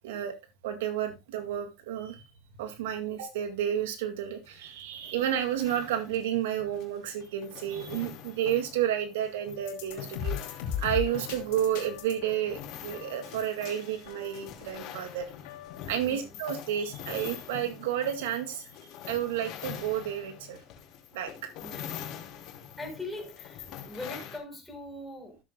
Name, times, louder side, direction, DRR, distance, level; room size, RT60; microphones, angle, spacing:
voice 1, 0.0-0.3 0.6-2.2 2.6-10.4 10.8-15.3 15.9-20.6 21.1-21.3, right 10 dB, 85° right, 2.0 m, -31 dB
sound 1, 4.4-24.4, left 9 dB, 55° left, 3.2 m, -45 dB
sound 2, 9.6-16.0, left 9 dB, 80° left, 2.6 m, -39 dB
voice 2, 16.0-16.4 21.6-22.0 22.8-25.4, left 2 dB, 5° left, 4.1 m, -41 dB
14.0 x 7.5 x 2.2 m
supercardioid pair, 120°, 0 cm